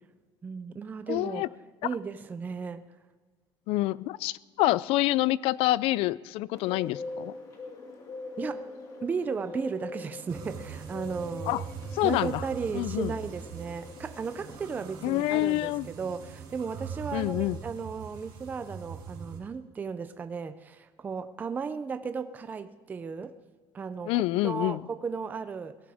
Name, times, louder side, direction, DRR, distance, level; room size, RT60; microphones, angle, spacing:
voice 1, 0.4-1.5 1.8-2.8 8.4-8.7 9.0-11.6 12.0-23.3 23.7-25.8, right 5 dB, 15° right, 11 dB, 0.4 m, -35 dB
voice 2, 1.1-1.5 3.7-7.4 11.5-11.6 11.9-12.4 12.7-13.1 15.0-15.9 17.1-17.6 24.1-24.9, left 17 dB, 70° left, 20 dB, 0.4 m, -27 dB
Bird, 6.5-14.8, left 3 dB, 35° left, 2.2 m, -43 dB
sound 1, 10.3-19.4, right 7 dB, 50° right, 3.2 m, -42 dB
18.5 x 17.0 x 3.5 m, 1.5 s
cardioid pair, 175°, 10 cm